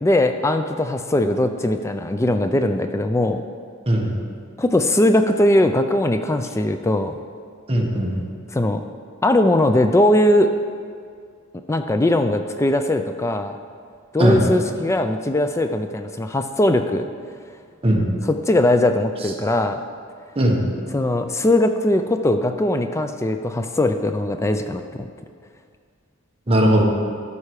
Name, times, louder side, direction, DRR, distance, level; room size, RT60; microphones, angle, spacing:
voice 1, 0.0-3.4 4.6-7.1 8.5-8.8 9.2-10.5 11.7-13.6 14.1-17.1 18.3-19.8 20.9-25.1, left 1 dB, 15° left, 8 dB, 0.3 m, -20 dB
voice 2, 7.7-8.2 14.2-14.4 17.8-18.1 20.3-20.6 26.5-26.8, right 1 dB, 30° right, -1 dB, 1.3 m, -18 dB
13.5 x 5.6 x 4.8 m, 2.1 s
head